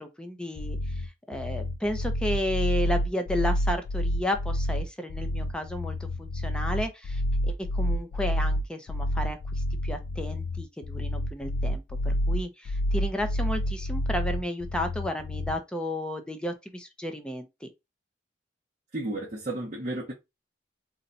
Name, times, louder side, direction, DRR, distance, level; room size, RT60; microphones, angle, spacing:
voice 1, 0.0-17.7, left 1 dB, 5° left, 0.4 m, -33 dB
sound 1, 0.6-15.6, left 1 dB, 70° left, 0.3 m, -29 dB
voice 2, 18.9-20.1, right 2 dB, 40° right, 0.7 m, -32 dB
2.7 x 2.1 x 3.8 m
head